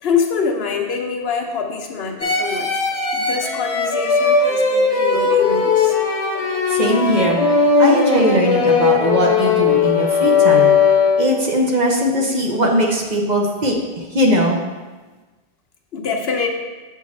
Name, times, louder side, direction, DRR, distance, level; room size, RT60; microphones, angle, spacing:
voice 1, 0.0-2.7 3.1-6.0 15.9-16.5, left 5 dB, 65° left, 3 dB, 0.9 m, -24 dB
sound 1, 2.2-11.5, left 5 dB, 40° left, 0.7 m, -17 dB
voice 2, 6.7-7.4 7.8-10.8 11.2-13.7 14.1-14.6, right 1 dB, 45° right, 0 dB, 0.8 m, -19 dB
7.3 x 5.6 x 3.1 m, 1.3 s
omnidirectional pair, 1.1 m